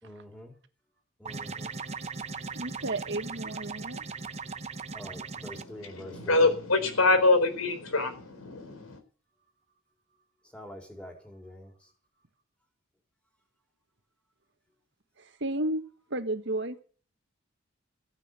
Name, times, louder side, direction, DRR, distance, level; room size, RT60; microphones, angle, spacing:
voice 1, 0.0-0.6 1.2-1.7 4.9-6.4 9.4-9.8 10.1-11.9, left 1 dB, 5° left, 4.3 m, -46 dB
sound 1, 1.3-5.6, right 4 dB, 30° right, 0.9 m, -38 dB
voice 2, 2.5-4.0 15.2-16.8, right 1 dB, 55° right, 1.6 m, -33 dB
voice 3, 5.5-9.0, left 3 dB, 80° left, 4.4 m, -25 dB
15.5 x 9.7 x 8.1 m
head